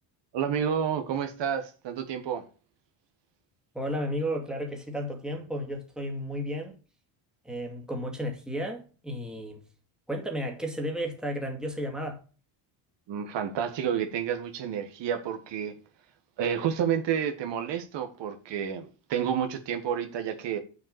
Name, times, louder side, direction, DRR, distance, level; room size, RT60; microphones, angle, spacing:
voice 1, 0.3-2.4 13.1-15.7 16.4-20.6, right 8 dB, 60° right, 1.5 m, -30 dB
voice 2, 3.7-6.8 7.4-9.6 10.1-12.2, equal, ahead, 2.2 m, -33 dB
7.0 x 5.3 x 6.6 m
cardioid pair, 130°, 49 cm